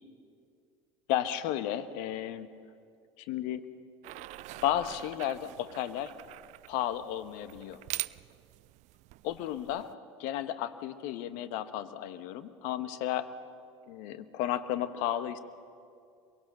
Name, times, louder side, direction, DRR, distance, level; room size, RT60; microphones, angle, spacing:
voice 1, 1.1-2.5 3.2-3.6 4.6-6.1 6.7-7.8 9.2-9.9 10.2-13.3 13.9-15.4, left 11 dB, 60° left, 12 dB, 1.3 m, -33 dB
sound 1, 4.0-9.9, right 19 dB, 50° right, 0.5 m, -44 dB
23.0 x 23.0 x 6.5 m, 2.3 s
hypercardioid pair, 70°, 15 cm